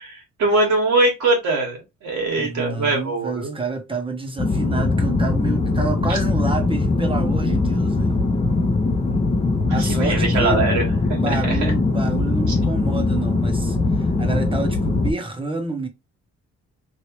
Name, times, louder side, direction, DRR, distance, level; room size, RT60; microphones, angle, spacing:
voice 1, 0.4-3.6 9.7-11.7 12.5-12.6, right 2 dB, 75° right, 1.7 m, -22 dB
voice 2, 2.3-8.1 9.7-10.6 11.1-15.9, right 3 dB, 15° right, 1.0 m, -29 dB
sound 1, 4.4-15.1, left 3 dB, 20° left, 0.8 m, -21 dB
3.2 x 2.7 x 3.1 m
cardioid pair, 90°, 30 cm